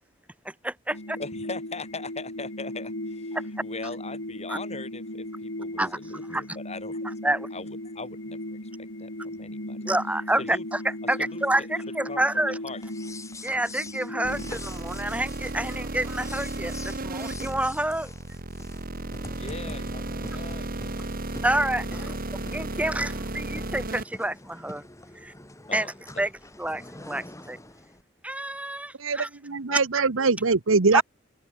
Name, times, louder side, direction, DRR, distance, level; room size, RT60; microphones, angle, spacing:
voice 1, 0.4-1.2 4.5-4.6 5.8-6.0 6.3-6.4 7.2-7.5 9.8-10.8 11.1-12.6 13.4-18.1 21.4-22.1 22.5-24.8 25.2-25.3 25.7-25.9 26.2-26.3 26.6-27.6 28.2-29.3 29.7-29.8 30.9-31.0, right 1 dB, 5° right, 1.3 m, -28 dB
sound 1, 0.9-14.6, left 1 dB, 75° left, 6.7 m, -37 dB
voice 2, 1.2-8.4 8.8-9.8 10.4-10.6 11.2-11.7 12.1-12.2 12.6-12.8 19.3-21.0 22.0-22.2 22.7-22.9 25.7-26.3, left 3 dB, 35° left, 5.6 m, -40 dB
sound 2, 12.8-28.0, left 2 dB, 15° left, 3.9 m, -45 dB
sound 3, 14.2-24.0, right 2 dB, 45° right, 2.2 m, -34 dB
voice 3, 29.0-31.0, right 4 dB, 85° right, 1.1 m, -23 dB
open air
head